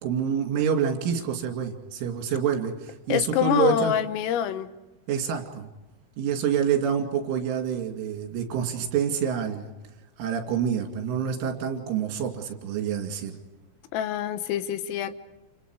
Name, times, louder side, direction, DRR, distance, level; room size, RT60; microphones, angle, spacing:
voice 1, 0.0-3.9 5.1-5.7 6.2-9.7 10.2-13.4, right 8 dB, 70° right, 3 dB, 4.9 m, -27 dB
voice 2, 3.1-4.7 13.9-15.1, left 10 dB, 80° left, 10 dB, 3.7 m, -25 dB
29.5 x 29.0 x 4.8 m, 1.0 s
omnidirectional pair, 5.9 m